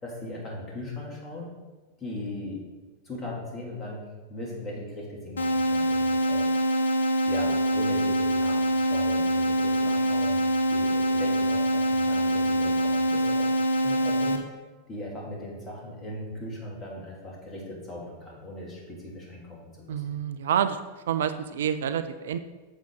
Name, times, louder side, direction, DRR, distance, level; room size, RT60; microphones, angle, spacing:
voice 1, 0.0-1.5 2.0-2.7 3.0-4.0 4.3-6.5 7.2-10.4 10.7-13.5 13.8-14.4 14.9-20.1, left 1 dB, 20° left, -3 dB, 2.8 m, -38 dB
sound 1, 5.4-14.4, equal, 70° left, 0.8 m, -24 dB
voice 2, 19.9-20.8 21.1-22.4, right 9 dB, 60° right, 11 dB, 0.4 m, -27 dB
8.9 x 7.1 x 3.9 m, 1.2 s
figure-of-eight pair, 90°, 0 cm